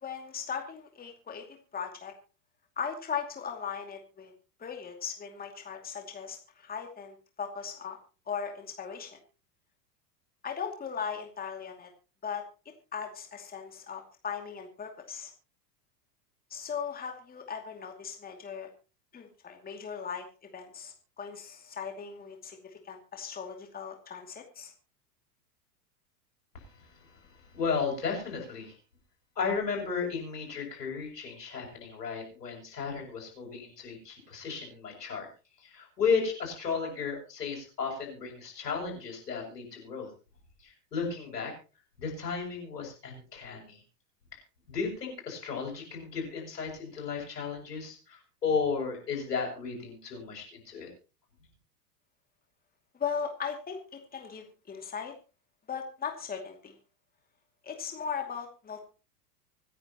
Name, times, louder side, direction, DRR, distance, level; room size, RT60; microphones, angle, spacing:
voice 1, 0.0-1.4 1.7-2.1 2.8-4.3 4.6-8.0 8.3-9.2 10.4-11.9 12.2-12.4 12.9-15.3 16.5-18.7 19.1-20.3 20.5-24.7 53.0-55.1 55.7-56.7 57.6-58.8, left 7 dB, 20° left, 4 dB, 2.5 m, -38 dB
voice 2, 26.5-28.7 29.4-35.3 35.6-40.1 40.6-41.5 42.0-43.8 44.7-50.9, left 5 dB, 80° left, 1 dB, 7.7 m, -34 dB
25.5 x 10.0 x 3.0 m, 0.34 s
figure-of-eight pair, 90°, 48 cm